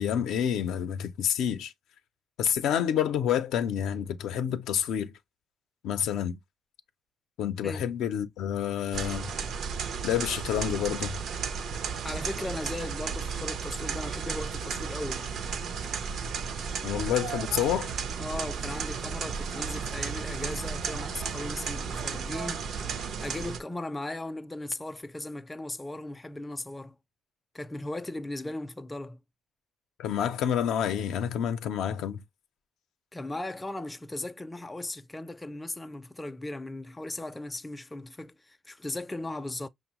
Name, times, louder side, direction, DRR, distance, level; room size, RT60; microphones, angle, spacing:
voice 1, 0.0-1.7 2.4-5.1 5.8-6.4 7.4-9.3 10.0-11.2 16.8-17.9 30.0-32.2, left 9 dB, 85° left, 0.4 m, -28 dB
sound 1, 8.9-23.6, right 6 dB, 70° right, 0.5 m, -34 dB
voice 2, 12.0-15.3 18.2-27.0 27.5-29.2 33.1-39.7, left 2 dB, 15° left, 0.4 m, -37 dB
5.2 x 2.1 x 2.8 m
cardioid pair, 90°, 0 cm